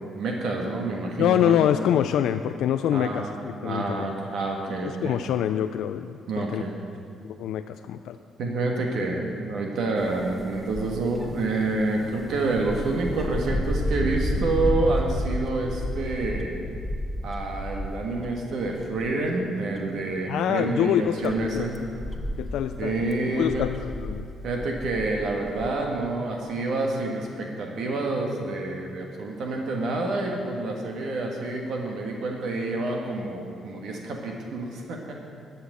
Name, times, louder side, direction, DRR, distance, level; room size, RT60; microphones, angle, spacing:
voice 1, 0.1-1.6 2.9-3.3 3.6-5.2 6.3-6.7 8.4-16.5 17.2-21.8 22.8-23.7 24.4-35.1, right 2 dB, 75° right, 1 dB, 1.4 m, -28 dB
voice 2, 1.2-3.4 3.6-4.1 4.8-6.6 7.3-8.2 20.3-21.7 22.4-23.1 23.3-24.3, left 10 dB, 85° left, 9 dB, 0.3 m, -25 dB
sound 1, 10.0-18.4 18.8-19.2 19.8-19.9 20.7-25.7, equal, 10° left, 1.1 m, -32 dB
11.5 x 5.9 x 8.8 m, 2.4 s
cardioid pair, 90°, 0 cm